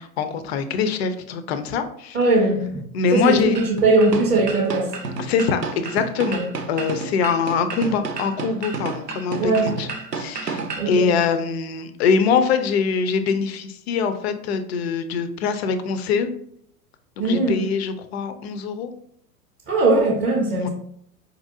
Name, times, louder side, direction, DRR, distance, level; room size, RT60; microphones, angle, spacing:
voice 1, 0.0-2.2 2.9-3.6 5.2-9.9 10.2-16.3 17.2-18.9 20.6-20.7, left 5 dB, 45° left, 9 dB, 0.4 m, -23 dB
voice 2, 2.1-2.8 3.1-5.0 6.4-6.5 9.4-9.8 10.8-11.1 17.2-17.6 19.7-20.7, right 2 dB, 15° right, -5 dB, 0.4 m, -20 dB
sound 1, 3.5-10.9, right 4 dB, 90° right, 0.6 m, -31 dB
4.5 x 2.6 x 2.6 m, 0.68 s
figure-of-eight pair, 90°, 48 cm